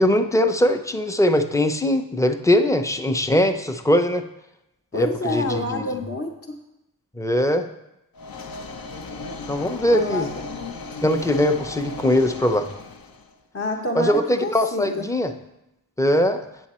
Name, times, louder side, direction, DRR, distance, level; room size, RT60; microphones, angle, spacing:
voice 1, 0.0-4.2 4.9-6.0 7.2-7.7 9.5-10.3 11.0-12.7 13.9-15.3 16.0-16.4, left 1 dB, 10° left, 7 dB, 0.5 m, -21 dB
voice 2, 4.9-6.6 9.9-10.8 13.5-15.1, left 2 dB, 45° left, -1 dB, 0.8 m, -28 dB
sound 1, 8.1-13.3, left 4 dB, 75° left, 0.7 m, -36 dB
8.2 x 7.1 x 4.2 m, 0.88 s
wide cardioid pair, 85°, 36 cm